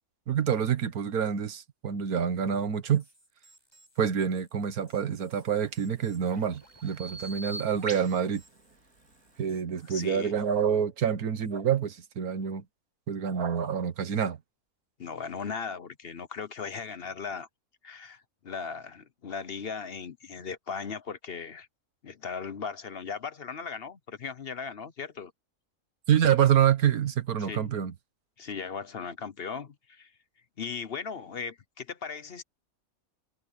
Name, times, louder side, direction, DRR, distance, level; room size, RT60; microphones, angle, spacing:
voice 1, 0.3-3.0 4.0-8.4 9.4-12.6 13.1-14.4 26.1-27.9, right 8 dB, 90° right, 1.7 m, -27 dB
sound 1, 2.8-10.1, equal, 15° left, 7.7 m, -62 dB
Bird vocalization bird call bird song, 5.4-9.6, right 2 dB, 75° right, 4.8 m, -44 dB
voice 2, 9.8-10.4 15.0-17.5 17.8-21.7 22.0-25.3 27.4-27.7 28.4-30.1 30.6-32.4, left 5 dB, 50° left, 0.9 m, -38 dB
omnidirectional pair, 1.5 m